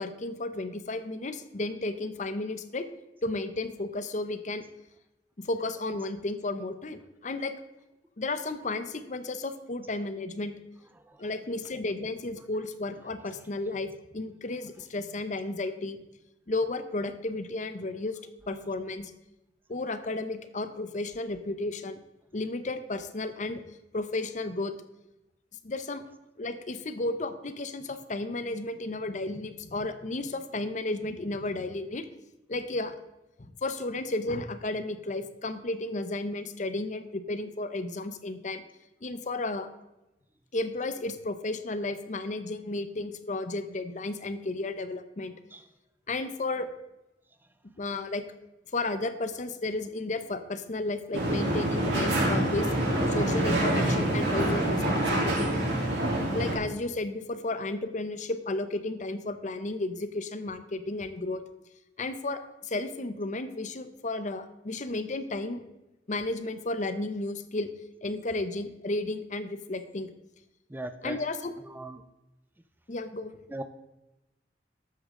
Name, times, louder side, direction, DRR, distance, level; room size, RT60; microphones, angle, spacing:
voice 1, 0.0-2.9 3.2-4.6 5.4-7.5 8.2-10.5 11.2-16.0 16.5-18.2 18.5-19.1 19.7-22.0 22.3-23.6 23.9-24.7 25.6-26.0 26.4-32.1 32.5-32.9 33.4-38.6 39.0-39.7 40.5-45.3 46.1-46.7 47.8-48.2 48.7-52.7 53.1-55.5 56.3-61.4 62.0-65.6 66.1-67.7 68.0-70.1 71.0-71.5 72.9-73.4, left 2 dB, 45° left, 11 dB, 0.8 m, -33 dB
sound 1, 51.1-56.6, right 1 dB, 70° right, 3.4 m, -26 dB
voice 2, 70.7-71.2 71.7-72.0 73.5-73.6, right 1 dB, 10° right, 10 dB, 0.5 m, -37 dB
12.5 x 8.5 x 3.8 m, 0.98 s
head